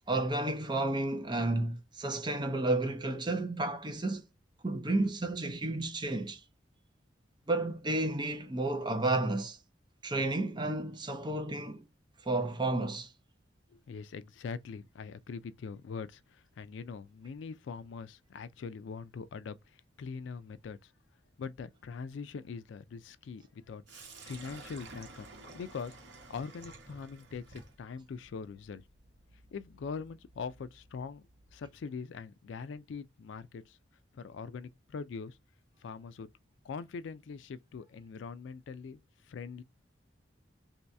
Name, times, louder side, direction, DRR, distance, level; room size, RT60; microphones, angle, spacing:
voice 1, 0.1-4.3 4.6-6.4 7.5-9.6 10.0-11.9 12.3-13.1, right 2 dB, 25° right, 0.5 m, -31 dB
voice 2, 13.7-20.9 21.4-26.0 26.3-28.8 29.5-31.2 31.5-33.8 34.1-35.4 35.8-36.3 36.6-39.0 39.2-39.6, left 5 dB, 75° left, 0.3 m, -42 dB
Sink (filling or washing), 23.9-31.8, right 3 dB, 65° right, 1.1 m, -53 dB
3.0 x 2.8 x 3.3 m
head